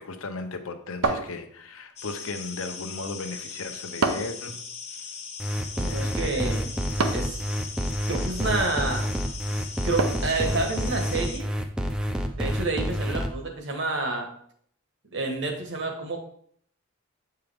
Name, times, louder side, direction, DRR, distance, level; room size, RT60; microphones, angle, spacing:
voice 1, 0.0-4.6 4.9-5.2 5.8-6.5, left 3 dB, 65° left, 0.7 m, -36 dB
sound 1, 1.0-1.9 4.0-4.5 7.0-7.4 10.0-10.4, right 3 dB, 85° right, 0.7 m, -27 dB
sound 2, 2.0-11.4, left 5 dB, 30° left, 0.7 m, -39 dB
sound 3, 5.4-13.3, equal, 5° right, 0.4 m, -28 dB
voice 2, 5.8-6.8 7.1-7.4 8.1-9.0 9.8-11.5 12.3-14.3 15.1-16.2, right 3 dB, 55° right, 1.3 m, -29 dB
7.9 x 4.7 x 3.5 m
head